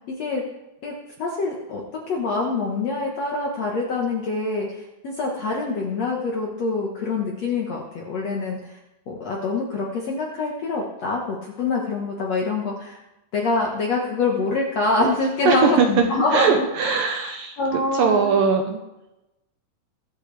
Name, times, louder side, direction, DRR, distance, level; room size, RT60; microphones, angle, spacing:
voice 1, 1.2-8.6 9.1-13.0 13.3-16.6 17.6-18.4, left 3 dB, 60° left, -1 dB, 1.8 m, -25 dB
voice 2, 15.5-16.1 16.3-17.6 17.9-18.8, right 5 dB, 70° right, 4 dB, 2.3 m, -20 dB
22.0 x 8.3 x 3.4 m, 0.95 s
omnidirectional pair, 4.7 m